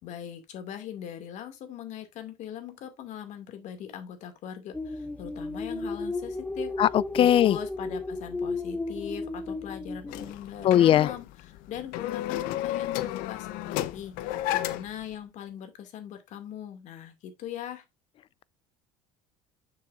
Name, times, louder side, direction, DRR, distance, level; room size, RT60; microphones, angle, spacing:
voice 1, 0.0-6.7 7.2-17.8, left 9 dB, 55° left, 2.4 m, -41 dB
sound 1, 4.7-10.3, left 2 dB, 10° left, 0.9 m, -34 dB
voice 2, 6.8-7.6 10.6-11.1, left 11 dB, 40° left, 0.4 m, -19 dB
sound 2, 10.1-15.0, left 14 dB, 75° left, 0.9 m, -32 dB
9.6 x 7.0 x 2.6 m
cardioid pair, 125°, 15 cm